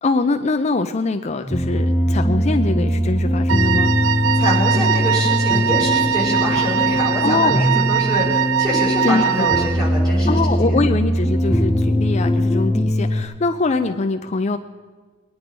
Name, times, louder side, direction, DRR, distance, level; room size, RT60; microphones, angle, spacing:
voice 1, 0.0-3.9 7.2-7.7 9.0-9.5 10.3-14.6, left 3 dB, 35° left, 7 dB, 0.5 m, -22 dB
sound 1, 1.4-13.2, equal, 5° left, 1.6 m, -20 dB
Wind instrument woodwind instrument, 3.5-9.8, right 10 dB, 65° right, 0.3 m, -21 dB
voice 2, 4.3-10.8, left 1 dB, 20° right, -4 dB, 5.1 m, -25 dB
21.5 x 10.0 x 5.3 m, 1.4 s
head